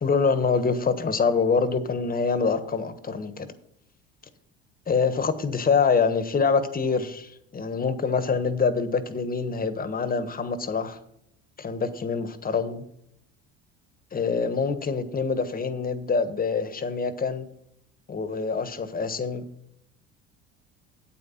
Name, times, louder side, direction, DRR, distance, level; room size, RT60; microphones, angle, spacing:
voice 1, 0.0-3.5 4.9-11.0 11.6-12.8 14.1-17.5 18.1-19.4, left 5 dB, 25° left, 12 dB, 1.3 m, -25 dB
8.6 x 8.4 x 5.8 m, 0.77 s
hypercardioid pair, 80°, 32 cm